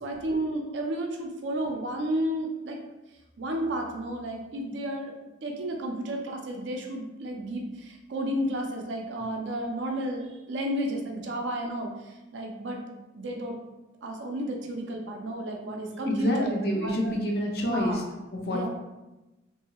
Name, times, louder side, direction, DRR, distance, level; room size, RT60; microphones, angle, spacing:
voice 1, 0.0-2.8 3.4-5.1 5.4-12.8 13.1-13.6 14.0-17.2 17.7-18.0 18.4-18.7, right 1 dB, 75° right, 1 dB, 0.5 m, -32 dB
voice 2, 16.1-18.0 18.3-18.7, left 1 dB, 55° left, 0 dB, 0.5 m, -27 dB
2.8 x 2.7 x 2.3 m, 1.0 s
head